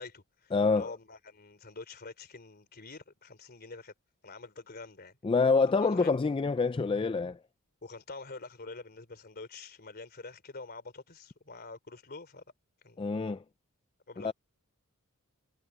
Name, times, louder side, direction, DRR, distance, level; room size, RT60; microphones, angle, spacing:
voice 1, 0.0-3.9 4.2-5.2 5.8-6.1 7.8-12.4 12.8-13.1 14.1-14.3, left 3 dB, 45° left, 3.3 m, -46 dB
voice 2, 0.5-0.9 5.2-7.4 13.0-13.4 14.2-14.3, left 4 dB, 25° left, 0.3 m, -26 dB
head